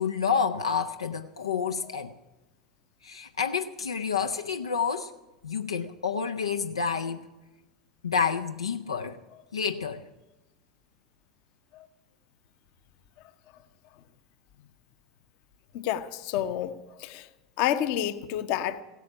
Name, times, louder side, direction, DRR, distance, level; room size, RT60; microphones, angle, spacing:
voice 1, 0.0-2.1 3.0-5.1 5.4-7.3 8.0-9.2 9.5-10.1, left 6 dB, 80° left, 0.6 m, -29 dB
voice 2, 15.7-17.3 17.6-18.8, left 11 dB, 50° left, 0.9 m, -29 dB
16.5 x 9.3 x 8.5 m
figure-of-eight pair, 80°, 3 cm